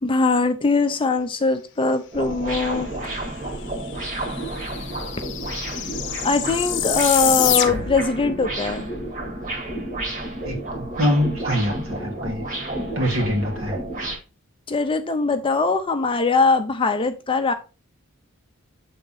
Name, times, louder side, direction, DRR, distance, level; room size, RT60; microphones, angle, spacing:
voice 1, 0.0-2.9 6.2-8.9 14.7-17.5, left 3 dB, 25° left, 8 dB, 0.6 m, -21 dB
sound 1, 2.1-14.2, right 1 dB, 35° right, 2.0 m, -31 dB
sound 2, 3.6-3.7 3.9-8.1, left 11 dB, 55° left, 0.8 m, -26 dB
voice 2, 10.4-12.4 13.0-13.8, equal, 65° right, 2 dB, 2.1 m, -24 dB
7.4 x 3.7 x 4.0 m, 0.32 s
head